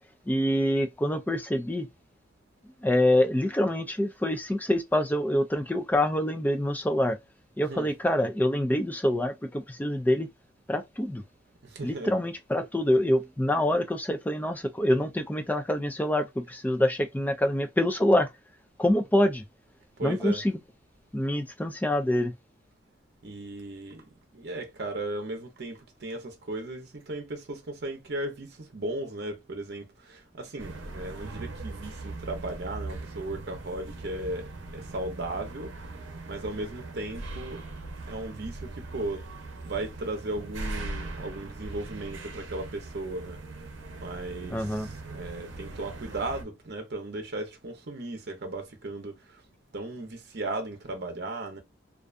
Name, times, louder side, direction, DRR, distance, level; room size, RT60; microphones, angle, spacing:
voice 1, 0.3-1.9 2.8-7.2 7.6-10.3 10.7-11.2 11.8-18.3 18.8-19.4 20.0-20.6 21.1-22.3 44.5-44.9, left 1 dB, 10° left, 0.3 m, -26 dB
voice 2, 11.6-12.2 20.0-20.4 23.2-36.0 36.3-37.6 38.1-39.2 39.6-43.4 44.0-49.4 49.7-51.6, right 2 dB, 55° right, 0.7 m, -36 dB
sound 1, 30.6-46.4, right 2 dB, 90° right, 0.7 m, -40 dB
2.4 x 2.3 x 2.4 m
head